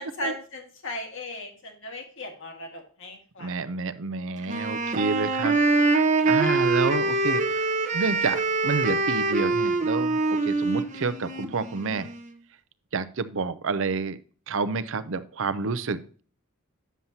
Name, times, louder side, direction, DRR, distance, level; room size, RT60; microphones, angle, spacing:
voice 1, 0.0-3.7, left 1 dB, 65° left, 3 dB, 1.9 m, -37 dB
voice 2, 3.4-5.6 5.9-12.1 12.9-14.2 14.5-16.2, right 4 dB, 65° right, 13 dB, 0.6 m, -29 dB
Wind instrument woodwind instrument, 4.4-12.3, right 3 dB, 35° right, 0.8 m, -24 dB
9.2 x 7.2 x 2.8 m, 0.41 s
head